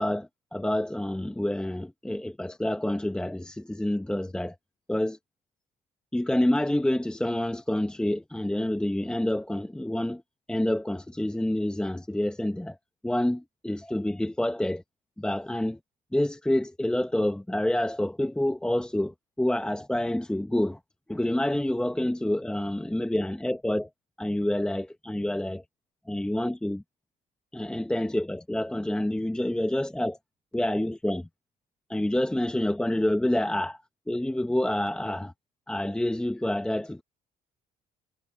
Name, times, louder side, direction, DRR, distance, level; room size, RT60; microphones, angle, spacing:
voice 1, 0.0-4.5 4.9-5.2 6.1-10.2 10.5-12.8 13.0-14.8 15.2-15.8 16.1-20.8 21.1-23.9 24.2-25.6 26.1-26.8 27.5-30.2 30.5-31.3 31.9-33.8 34.1-35.3 35.7-37.0, left 1 dB, 5° left, 0.9 m, -28 dB
cardioid pair, 110°, 17 cm